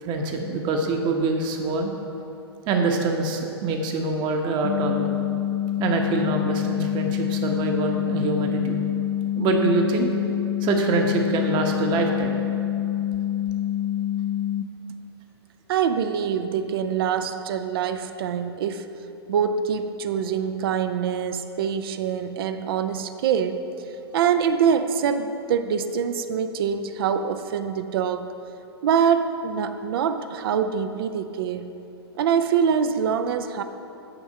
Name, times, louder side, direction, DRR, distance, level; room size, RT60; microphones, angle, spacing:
voice 1, 0.0-1.9 2.7-5.1 5.8-8.8 9.4-10.1 10.6-12.4, right 3 dB, 35° right, 3 dB, 0.9 m, -24 dB
sound 1, 4.6-14.6, left 11 dB, 50° left, 0.4 m, -26 dB
voice 2, 15.7-18.9 19.3-23.6 24.1-28.3 28.8-31.7 32.2-33.6, right 7 dB, 60° right, 9 dB, 0.5 m, -24 dB
8.8 x 3.6 x 6.3 m, 2.8 s
hypercardioid pair, 115°, 14 cm